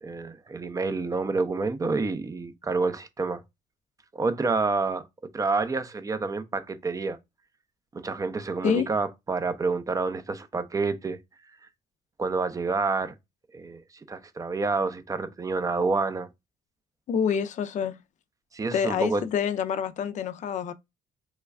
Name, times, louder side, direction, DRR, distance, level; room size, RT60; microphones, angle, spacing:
voice 1, 0.0-3.4 4.1-5.0 5.3-7.2 7.9-11.2 12.2-13.1 13.5-13.8 14.1-16.3 18.5-19.2, right 4 dB, 20° right, 0.4 m, -28 dB
voice 2, 17.1-18.0 18.7-20.7, left 7 dB, 45° left, 0.4 m, -27 dB
3.1 x 2.2 x 3.4 m
cardioid pair, 110°, 17 cm